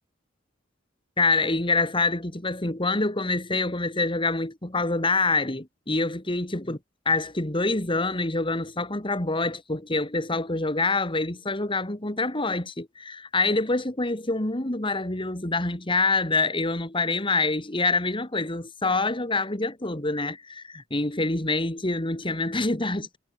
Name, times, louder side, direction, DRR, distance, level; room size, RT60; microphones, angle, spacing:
voice 1, 1.2-6.8 7.1-23.2, left 3 dB, 25° left, 2.5 m, -26 dB
head